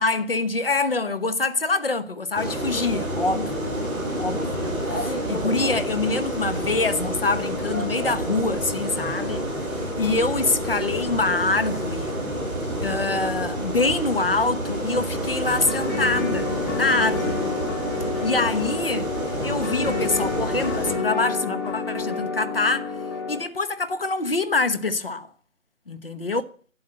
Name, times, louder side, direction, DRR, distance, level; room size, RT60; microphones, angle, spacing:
voice 1, 0.0-3.8 4.1-9.5 9.9-12.2 12.8-17.4 18.2-19.1 19.4-22.9 23.3-25.3 25.9-26.4, left 3 dB, 45° left, 1.2 m, -25 dB
sound 1, 2.3-20.9, right 1 dB, 15° right, 6.2 m, -28 dB
sound 2, 15.4-23.4, left 4 dB, 15° left, 2.6 m, -29 dB
12.0 x 8.5 x 9.3 m
figure-of-eight pair, 160°, 41 cm